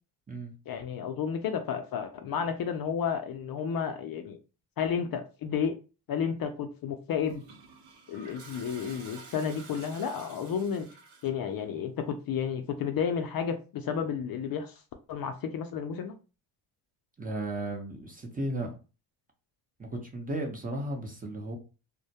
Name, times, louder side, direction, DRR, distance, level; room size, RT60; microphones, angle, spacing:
voice 1, 0.7-4.4 4.8-5.8 6.1-7.4 8.1-10.9 11.2-14.7 15.1-16.1, left 7 dB, 50° left, 0.4 m, -32 dB
Toilet flush, 7.2-11.5, right 4 dB, 75° right, 0.9 m, -50 dB
voice 2, 17.2-18.7 19.8-21.6, right 1 dB, 20° right, 0.7 m, -35 dB
2.1 x 2.1 x 2.7 m
cardioid pair, 75°, 47 cm